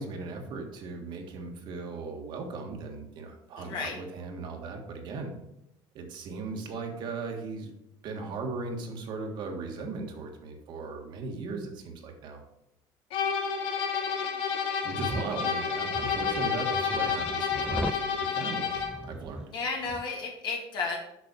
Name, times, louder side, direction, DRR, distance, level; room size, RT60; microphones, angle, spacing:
voice 1, 0.0-5.3 5.9-7.7 8.0-12.4 14.8-19.5, right 3 dB, 60° right, 2 dB, 1.7 m, -38 dB
voice 2, 3.6-4.0 19.5-21.0, left 4 dB, 55° left, 0 dB, 2.3 m, -33 dB
sound 1, 13.1-19.1, left 6 dB, 80° left, 1.4 m, -30 dB
sound 2, 14.8-15.3 15.9-18.1 18.8-19.5 19.8-20.0, right 2 dB, 10° right, 0.3 m, -38 dB
6.9 x 6.2 x 5.3 m, 0.84 s
cardioid pair, 140°, 9 cm